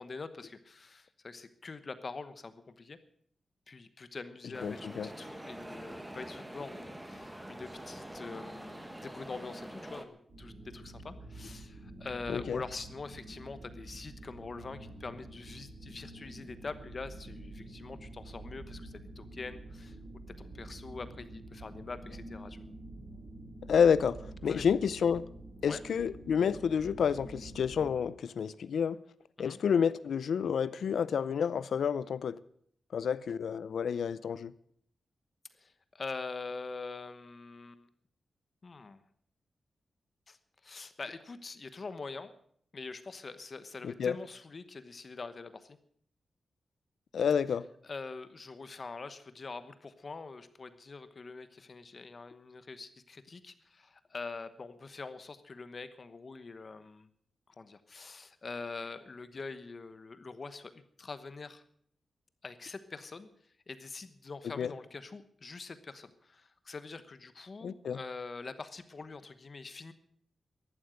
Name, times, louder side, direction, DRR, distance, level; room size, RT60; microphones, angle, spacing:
voice 1, 0.0-3.0 3.7-20.0 20.4-22.6 24.5-24.6 25.7-25.8 29.4-29.6 35.6-37.9 38.6-39.0 40.3-40.4 40.6-42.3 42.7-45.8 47.8-57.1 57.6-61.6 62.4-63.3 63.7-69.9, left 4 dB, 35° left, 12 dB, 1.0 m, -44 dB
sound 1, 4.5-10.0, right 1 dB, 10° right, 1.3 m, -45 dB
voice 2, 4.6-5.1 12.3-12.6 23.7-24.2 24.4-25.2 25.6-29.0 29.4-32.4 32.9-34.5 43.8-44.1 47.1-47.7 64.6-64.7 67.6-68.0, left 7 dB, 85° left, 17 dB, 0.6 m, -29 dB
sound 2, 10.3-27.9, right 2 dB, 50° right, 4.8 m, -48 dB
14.0 x 11.5 x 8.0 m, 0.63 s
wide cardioid pair, 165°, 0 cm